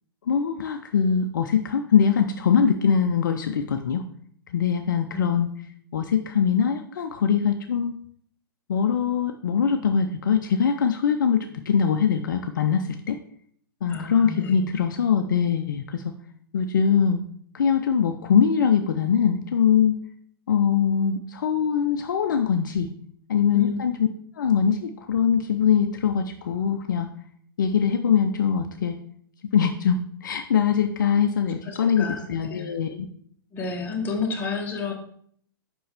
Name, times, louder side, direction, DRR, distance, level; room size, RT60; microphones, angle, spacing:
voice 1, 0.3-4.0 4.5-5.5 5.9-8.0 8.7-13.2 13.8-16.0 16.5-17.2 17.5-20.0 20.5-22.9 23.3-24.1 24.4-27.1 27.6-29.0 29.5-33.1, left 7 dB, 55° left, 6 dB, 0.5 m, -22 dB
voice 2, 13.9-14.6 23.5-23.8 31.6-32.7 33.5-34.9, left 4 dB, 15° left, 0 dB, 1.3 m, -31 dB
7.6 x 5.3 x 3.5 m, 0.63 s
figure-of-eight pair, 110°, 12 cm